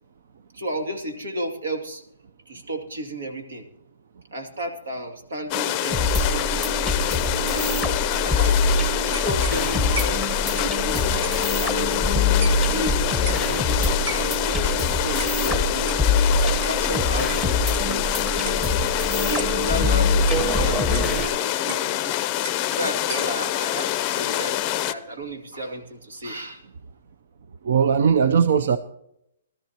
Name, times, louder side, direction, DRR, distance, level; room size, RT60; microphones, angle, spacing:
voice 1, 0.5-2.0 2.5-3.7 4.3-6.7 7.5-7.7 8.2-12.1 12.7-15.9 16.4-18.1 19.2-22.1 22.7-26.7, right 1 dB, 85° right, 5 dB, 2.4 m, -33 dB
sound 1, 5.5-24.9, left 13 dB, 25° left, 0.5 m, -26 dB
sound 2, 5.9-21.3, left 2 dB, 10° right, 1.1 m, -24 dB
sound 3, 9.1-12.1 12.4-12.9 13.2-13.6 14.1-14.6 15.2-15.4 15.9-18.2 18.5-18.7 19.0-19.1 19.4-19.7 20.3-21.2 21.7-22.1 22.4-22.7 23.0-23.6, right 3 dB, 40° right, 1.6 m, -38 dB
voice 2, 27.6-28.8, right 7 dB, 60° right, 12 dB, 0.5 m, -18 dB
19.5 x 13.0 x 2.9 m, 0.78 s
hypercardioid pair, 160°, 0 cm